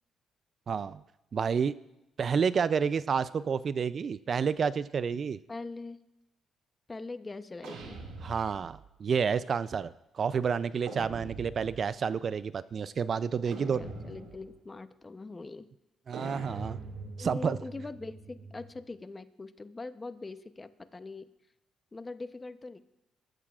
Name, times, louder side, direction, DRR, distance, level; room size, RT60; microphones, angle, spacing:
voice 1, 0.7-1.0 1.3-1.7 2.2-5.4 8.2-13.8 16.1-16.8 17.2-17.6, right 6 dB, 50° right, 16 dB, 0.4 m, -30 dB
voice 2, 5.5-6.0 6.9-8.0 13.4-15.7 17.2-21.3 21.9-22.8, left 3 dB, 25° left, 11 dB, 0.7 m, -42 dB
sound 1, 7.6-8.9 10.9-11.9 13.5-14.6 16.1-18.8, right 3 dB, 85° right, 2.1 m, -43 dB
21.0 x 13.0 x 2.4 m, 0.91 s
cardioid pair, 90°, 0 cm